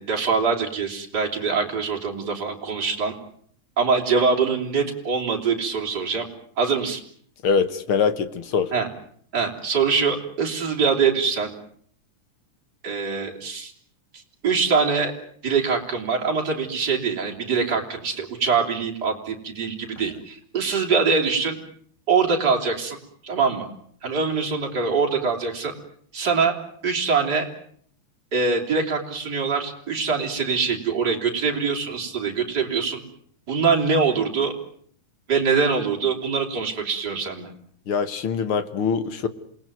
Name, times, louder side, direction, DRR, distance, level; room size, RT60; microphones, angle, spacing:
voice 1, 0.0-3.2 3.8-6.3 6.6-7.0 8.7-8.9 9.3-11.5 12.8-13.7 14.1-15.1 15.4-21.6 22.1-23.0 23.2-23.7 24.0-25.7 26.1-26.5 26.8-27.5 28.3-33.0 33.5-34.5 35.3-37.5, right 5 dB, 30° right, 1 dB, 4.0 m, -23 dB
voice 2, 7.4-8.7 37.9-39.3, left 6 dB, 50° left, 12 dB, 1.9 m, -23 dB
27.5 x 20.0 x 9.3 m, 0.63 s
omnidirectional pair, 3.4 m